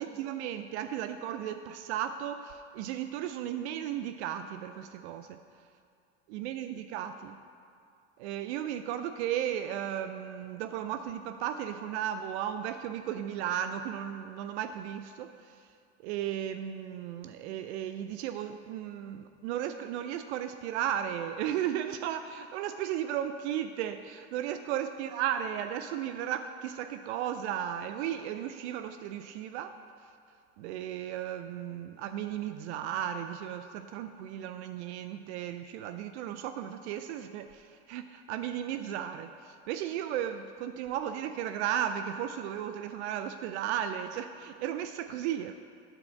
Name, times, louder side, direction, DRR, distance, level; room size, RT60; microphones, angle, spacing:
voice 1, 0.0-5.4 6.3-7.4 8.2-15.7 16.0-30.1 30.6-45.5, right 10 dB, 75° right, 9 dB, 0.5 m, -35 dB
9.9 x 4.2 x 5.6 m, 2.4 s
supercardioid pair, 100°, 34 cm